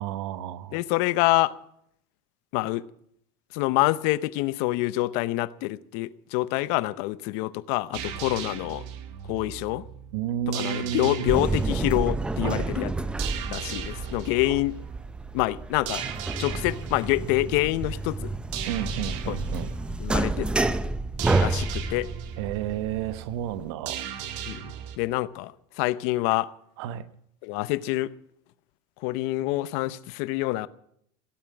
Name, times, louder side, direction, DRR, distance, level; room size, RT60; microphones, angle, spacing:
voice 1, 0.0-0.8 10.1-11.3 12.4-12.7 14.4-14.6 18.7-19.7 22.4-24.1 26.8-27.0, right 10 dB, 80° right, 14 dB, 1.0 m, -31 dB
voice 2, 0.7-1.5 2.5-2.8 3.5-8.8 9.3-9.9 10.5-12.9 13.5-14.8 15.3-16.0 16.4-18.3 19.3-19.4 20.0-20.5 21.4-22.1 24.5-24.6 25.0-26.5 27.4-28.1 29.0-30.7, left 18 dB, 65° left, 18 dB, 0.7 m, -26 dB
sound 1, 7.9-25.0, right 10 dB, 60° right, 1.9 m, -38 dB
sound 2, 11.3-23.7, right 2 dB, 5° right, 0.5 m, -29 dB
17.0 x 7.4 x 9.6 m, 0.71 s
cardioid pair, 155°, 14 cm